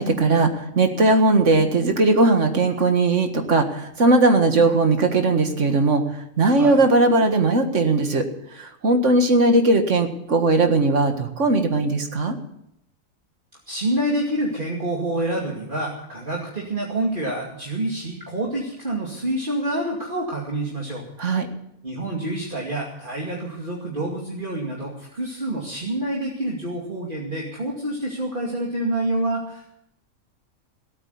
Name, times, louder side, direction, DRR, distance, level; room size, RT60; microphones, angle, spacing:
voice 1, 0.0-6.0 6.4-8.2 8.6-12.4 21.2-21.5, right 2 dB, 65° right, 6 dB, 2.1 m, -18 dB
voice 2, 13.7-21.0 21.8-29.7, right 1 dB, 40° right, -3 dB, 2.7 m, -27 dB
17.0 x 9.1 x 8.2 m, 0.77 s
omnidirectional pair, 1.4 m